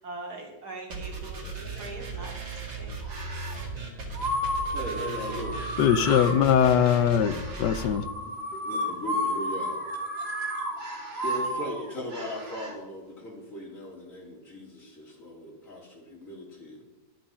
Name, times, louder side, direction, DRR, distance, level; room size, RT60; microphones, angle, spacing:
voice 1, 0.0-3.0 6.2-7.1, right 2 dB, 65° right, 3.1 m, -43 dB
sound 1, 0.9-7.9, right 3 dB, 80° right, 2.8 m, -37 dB
sound 2, 3.0-3.6 4.1-12.7, equal, 35° right, 2.2 m, -33 dB
voice 2, 4.7-5.7 8.2-9.8 11.2-16.9, equal, 50° left, 3.8 m, -38 dB
voice 3, 5.8-8.0, left 8 dB, 90° left, 1.4 m, -21 dB
11.5 x 10.5 x 5.6 m
omnidirectional pair, 1.8 m